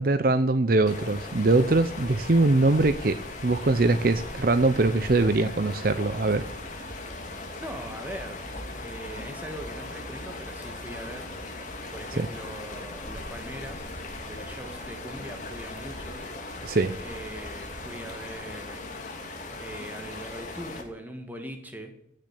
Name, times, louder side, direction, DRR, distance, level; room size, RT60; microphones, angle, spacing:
voice 1, 0.0-6.5 12.2-12.3 16.6-16.9, right 2 dB, 50° right, 10 dB, 0.7 m, -22 dB
sound 1, 0.9-20.8, left 2 dB, 40° left, 2.9 m, -38 dB
voice 2, 7.6-11.3 11.9-13.9 14.2-16.7 17.0-18.9 19.6-21.9, equal, 10° right, 4 dB, 2.0 m, -41 dB
15.5 x 6.6 x 10.0 m, 0.74 s
head